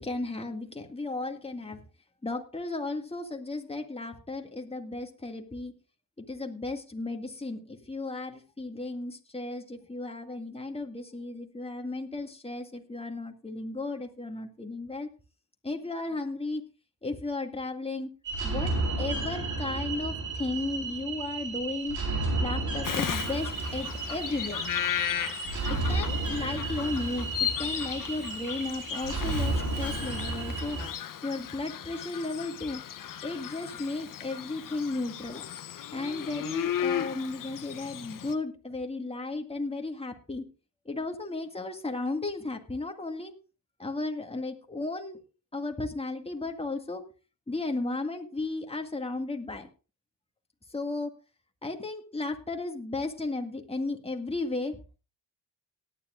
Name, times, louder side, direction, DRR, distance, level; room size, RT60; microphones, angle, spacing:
voice 1, 0.0-1.8 2.2-5.7 6.2-15.1 15.6-16.6 17.0-18.1 18.4-22.0 22.4-24.6 25.7-30.8 31.2-32.8 33.2-35.4 35.9-40.4 40.9-43.3 43.8-45.2 45.5-47.0 47.5-49.7 50.7-51.1 51.6-55.0, left 2 dB, 15° left, 4 dB, 2.0 m, -34 dB
sound 1, 18.2-30.9, right 3 dB, 50° right, 4.1 m, -32 dB
Bird vocalization bird call bird song, 22.8-38.3, left 10 dB, 55° left, 0.9 m, -35 dB
18.5 x 10.0 x 2.5 m, 0.33 s
supercardioid pair, 65°, 39 cm